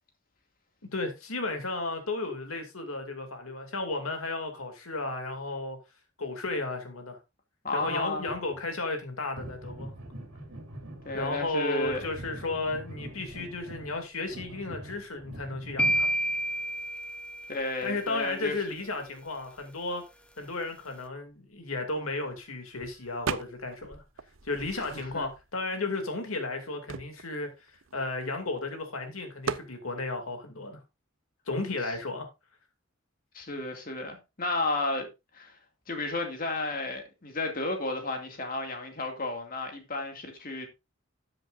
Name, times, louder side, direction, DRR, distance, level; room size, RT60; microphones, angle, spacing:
voice 1, 0.9-5.8 6.2-7.2 7.7-9.9 11.1-16.1 17.8-20.0 20.4-24.0 24.4-27.5 27.9-30.8 31.5-32.3, left 2 dB, 85° left, 2.6 m, -34 dB
voice 2, 7.6-8.3 11.0-12.1 17.5-18.6 24.9-25.3 33.3-35.1 35.3-35.6 35.9-40.7, left 2 dB, 40° left, 2.3 m, -32 dB
sound 1, 7.8-8.6 9.4-11.5 11.8-16.1 22.3-22.4 22.8-22.9 23.3-23.4 23.8-24.0 24.4-25.4, right 1 dB, 85° right, 2.5 m, -44 dB
sound 2, 15.8-17.9, right 1 dB, 5° left, 0.7 m, -29 dB
sound 3, 23.3-23.8 24.2-25.4 26.1-26.2 26.4-28.6 29.4-29.7, right 6 dB, 65° right, 0.6 m, -37 dB
13.5 x 7.8 x 2.6 m
head